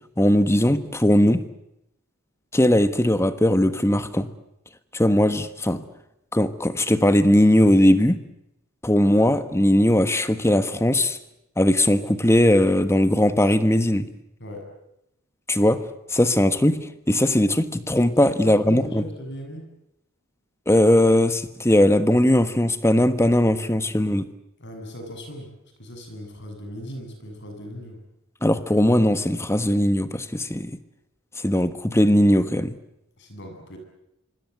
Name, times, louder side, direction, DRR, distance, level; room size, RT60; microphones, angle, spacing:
voice 1, 0.2-1.5 2.5-4.3 4.9-5.8 6.3-8.2 8.8-11.2 11.6-14.1 15.5-19.0 20.7-24.3 28.4-30.7 31.4-32.7, left 1 dB, 10° left, 1.3 m, -19 dB
voice 2, 18.2-19.7 24.6-25.5 25.8-28.0 33.2-33.8, equal, 55° left, 7.4 m, -38 dB
25.5 x 25.5 x 8.1 m
head